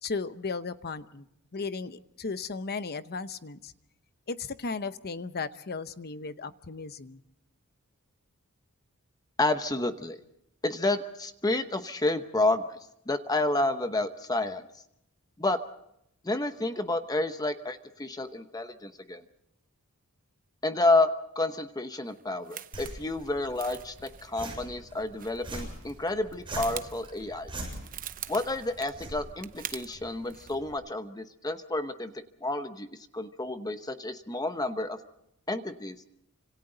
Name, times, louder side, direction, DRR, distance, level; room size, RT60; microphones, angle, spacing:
voice 1, 0.0-1.3 1.5-3.7 4.3-7.2, left 4 dB, 45° left, 12 dB, 0.8 m, -35 dB
voice 2, 9.4-10.2 10.6-12.8 13.1-14.6 15.4-15.6 16.2-19.2 20.6-27.5 28.3-32.1 32.4-32.9 33.1-35.0 35.5-35.9, left 2 dB, 15° left, 8 dB, 0.9 m, -30 dB
sound 1, 22.2-26.0 26.2-30.0 30.2-30.6, right 10 dB, 40° right, 0.8 m, -44 dB
sound 2, 22.7-30.7, right 1 dB, 25° right, 7.4 m, -43 dB
29.5 x 26.5 x 3.9 m, 0.78 s
head